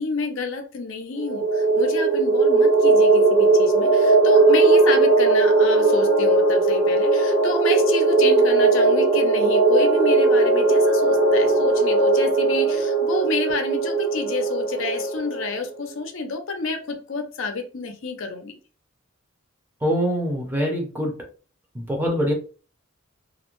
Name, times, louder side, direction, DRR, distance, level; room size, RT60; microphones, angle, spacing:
voice 1, 0.0-18.5, left 3 dB, 65° left, 5 dB, 0.5 m, -29 dB
sound 1, 1.2-15.5, right 3 dB, 50° right, 0.8 m, -18 dB
voice 2, 19.8-21.1 21.7-22.3, equal, 10° right, 0 dB, 0.5 m, -24 dB
2.5 x 2.1 x 2.9 m, 0.36 s
head